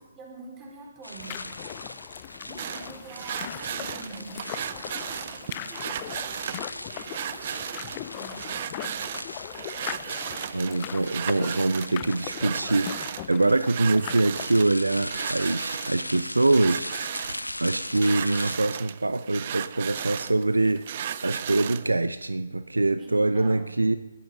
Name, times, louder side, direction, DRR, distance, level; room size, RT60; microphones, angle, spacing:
voice 1, 0.2-1.7 2.4-8.4 23.0-23.8, right 2 dB, 15° right, -2 dB, 4.5 m, -46 dB
sound 1, 1.0-18.6, left 1 dB, 85° left, 0.9 m, -40 dB
sound 2, 1.2-14.5, left 15 dB, 25° left, 0.4 m, -40 dB
sound 3, 2.6-21.9, right 9 dB, 35° right, 0.7 m, -36 dB
voice 2, 10.5-16.9 17.3-24.0, right 2 dB, 75° right, 12 dB, 0.7 m, -24 dB
20.0 x 14.0 x 3.9 m, 1.1 s
figure-of-eight pair, 140°, 0 cm